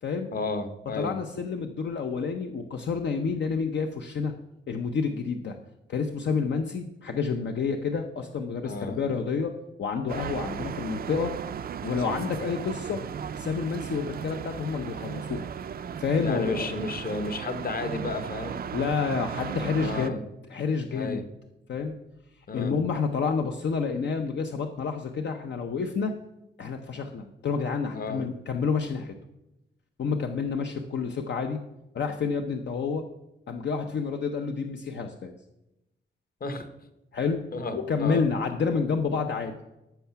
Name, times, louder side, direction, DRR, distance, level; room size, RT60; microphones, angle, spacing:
voice 1, 0.3-1.1 8.6-9.0 16.2-18.6 19.8-20.2 20.9-21.2 22.5-22.8 27.9-28.2 36.4-36.7 37.5-38.2, left 3 dB, 50° left, 9 dB, 1.1 m, -32 dB
voice 2, 1.0-4.3 4.7-5.6 5.9-9.5 9.8-11.3 11.8-13.0 13.4-15.5 16.0-16.7 18.7-20.2 20.5-21.2 21.7-21.9 22.5-26.1 26.6-29.1 30.0-31.6 31.9-33.0 33.5-35.3 37.1-37.4 37.7-39.5, left 5 dB, 65° left, 5 dB, 0.8 m, -29 dB
sound 1, 10.1-20.1, right 8 dB, 50° right, 0.4 m, -36 dB
14.0 x 5.7 x 5.8 m, 0.92 s
wide cardioid pair, 160°, 20 cm